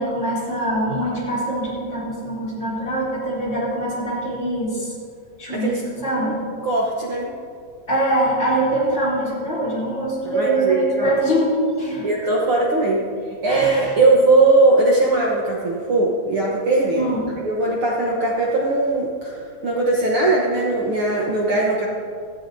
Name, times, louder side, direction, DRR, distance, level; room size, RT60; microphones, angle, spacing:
voice 1, 0.0-4.9 5.4-6.3 7.9-12.3 13.5-14.0 16.9-17.2, right 1 dB, 20° left, -7 dB, 3.4 m, -23 dB
voice 2, 6.6-7.3 10.2-11.1 12.0-13.0 13.4-17.1 17.4-21.9, right 2 dB, 65° right, -4 dB, 1.4 m, -19 dB
17.5 x 13.0 x 2.8 m, 2.3 s
omnidirectional pair, 4.1 m